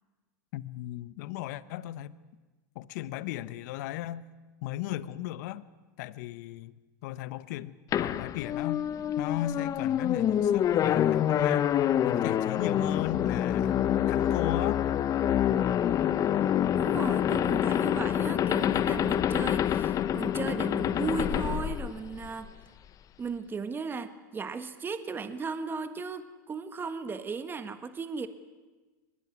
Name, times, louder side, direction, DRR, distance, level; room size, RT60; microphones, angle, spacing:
voice 1, 0.5-2.2 2.7-4.2 4.6-5.6 6.0-6.7 7.0-8.9 9.2-11.8 12.1-14.9, left 13 dB, 65° left, 1.1 m, -36 dB
sound 1, 7.9-22.5, left 10 dB, 35° left, 1.0 m, -27 dB
voice 2, 16.7-22.5 23.2-28.3, right 5 dB, 20° right, 1.6 m, -36 dB
22.5 x 20.5 x 9.7 m
hypercardioid pair, 105°, 10 cm